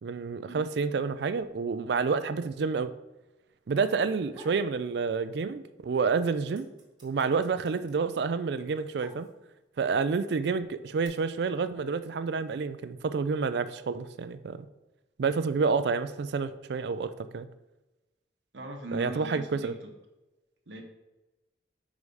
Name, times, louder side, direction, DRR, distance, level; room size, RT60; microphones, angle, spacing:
voice 1, 0.0-2.9 3.7-6.7 7.0-9.3 9.8-14.7 15.2-17.5 18.9-19.7, right 5 dB, 60° right, 13 dB, 0.4 m, -29 dB
sound 1, 4.3-4.7 5.1-5.8 6.1-9.7 10.4-11.1, right 1 dB, 25° right, 1.6 m, -51 dB
voice 2, 18.5-19.8 20.7-20.8, right 2 dB, 85° right, 3 dB, 1.1 m, -39 dB
4.8 x 4.8 x 5.4 m, 1.0 s
head